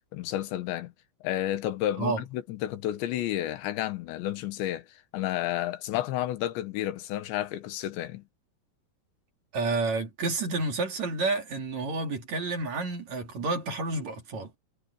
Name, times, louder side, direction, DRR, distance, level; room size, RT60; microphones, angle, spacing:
voice 1, 0.1-0.9 1.2-8.2, left 13 dB, 85° left, 3.6 m, -31 dB
voice 2, 9.5-14.5, right 3 dB, 45° right, 3.5 m, -30 dB
omnidirectional pair, 5.0 m